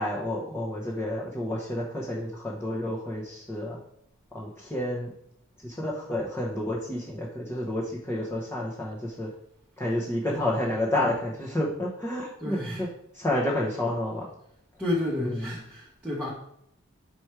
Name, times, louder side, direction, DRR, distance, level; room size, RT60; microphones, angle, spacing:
voice 1, 0.0-3.8 4.3-5.1 5.6-9.3 9.8-12.9 13.1-14.3 15.2-15.5, left 1 dB, 10° left, -5 dB, 1.0 m, -30 dB
voice 2, 12.4-12.9 14.8-16.3, left 1 dB, 5° right, -7 dB, 1.2 m, -31 dB
6.1 x 4.5 x 4.8 m, 0.73 s
head